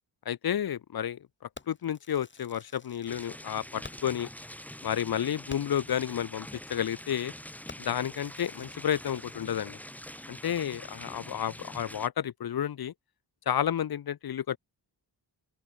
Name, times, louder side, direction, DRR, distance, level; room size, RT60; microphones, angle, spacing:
voice 1, 0.3-1.2 1.7-4.3 4.8-7.3 7.8-9.8 10.3-12.9 13.5-14.6, left 9 dB, 60° left, 0.7 m, -31 dB
Fireworks, 1.5-4.3 4.6-4.7 5.1-5.2 5.5-5.9 6.5-6.7 7.1-7.3 7.7-9.8, left 3 dB, 25° left, 2.3 m, -51 dB
sound 1, 3.1-12.1, left 1 dB, 5° left, 0.9 m, -45 dB
open air
wide cardioid pair, 160°, 43 cm